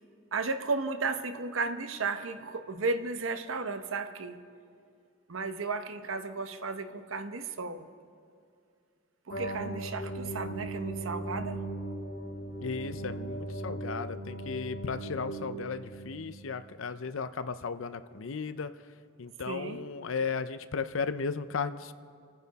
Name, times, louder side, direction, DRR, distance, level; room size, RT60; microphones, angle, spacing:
voice 1, 0.3-4.4 5.3-7.9 9.3-11.6 19.5-19.8, right 4 dB, 90° right, 9 dB, 0.9 m, -34 dB
sound 1, 9.3-16.4, right 1 dB, 60° left, 1.8 m, -38 dB
voice 2, 12.6-18.7 19.2-21.9, left 5 dB, 80° left, 12 dB, 0.6 m, -35 dB
28.0 x 9.6 x 4.1 m, 2.4 s
head